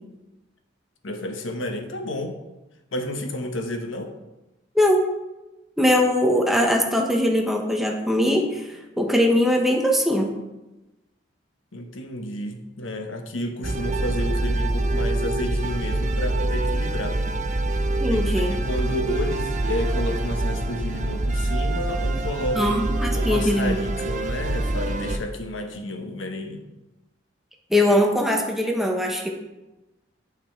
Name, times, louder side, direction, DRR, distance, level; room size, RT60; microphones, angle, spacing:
voice 1, 1.0-2.4 2.9-4.1 11.7-17.2 18.1-26.6, left 1 dB, 90° left, 6 dB, 1.0 m, -31 dB
voice 2, 5.8-8.6 9.0-10.3 18.0-18.6 22.5-23.8 27.7-29.3, left 1 dB, ahead, 1 dB, 1.0 m, -21 dB
sound 1, 13.6-25.2, right 2 dB, 40° right, 0.6 m, -25 dB
9.2 x 5.9 x 4.5 m, 1.0 s
head